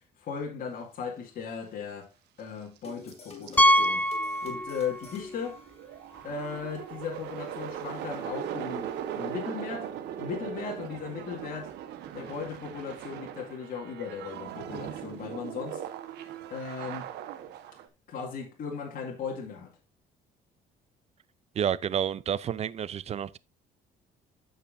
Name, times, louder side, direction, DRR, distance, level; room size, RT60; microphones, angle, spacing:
voice 1, 0.2-2.1 2.4-4.1 4.4-5.6 6.2-8.9 9.2-9.9 10.2-11.7 12.1-15.8 16.5-17.1 18.1-19.7, left 6 dB, 55° left, 2.2 m, -37 dB
sound 1, 2.8-6.3, left 4 dB, 35° left, 2.6 m, -47 dB
sound 2, 2.8-2.9 3.1-3.9 4.3-4.4 4.6-17.9, right 10 dB, 80° right, 1.2 m, -39 dB
Piano, 3.6-5.2 5.4-5.6 6.2-6.3 6.5-6.6 8.7-8.8, equal, 10° left, 0.5 m, -24 dB
voice 2, 21.6-23.4, right 9 dB, 40° right, 0.5 m, -30 dB
14.5 x 5.6 x 2.6 m
cardioid pair, 110°, 17 cm